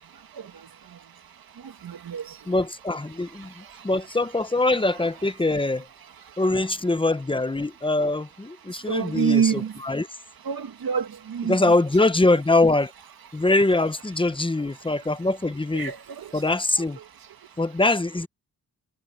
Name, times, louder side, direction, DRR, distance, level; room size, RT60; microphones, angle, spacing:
voice 1, 1.8-2.2 8.9-9.7 10.5-11.7 15.7-16.2, right 7 dB, 80° right, 2.0 m, -26 dB
voice 2, 2.5-5.9 6.4-10.1 11.5-12.9 13.3-15.9 16.3-17.0 17.6-18.3, left 2 dB, 15° left, 1.0 m, -23 dB
wide cardioid pair, 110°, 35 cm